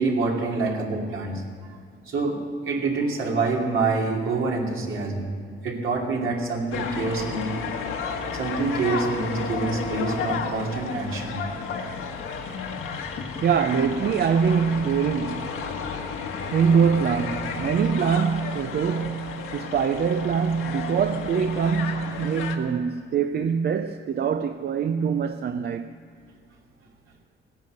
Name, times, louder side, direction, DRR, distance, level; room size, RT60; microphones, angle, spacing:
voice 1, 0.0-1.4 2.1-5.3 5.6-7.5 8.3-11.4, right 3 dB, 70° right, 2.9 m, -26 dB
sound 1, 6.7-22.6, left 5 dB, 75° left, 1.7 m, -32 dB
voice 2, 13.1-15.6 16.5-25.9, right 6 dB, 50° right, 0.6 m, -24 dB
17.5 x 10.5 x 8.0 m
cardioid pair, 105°, 21 cm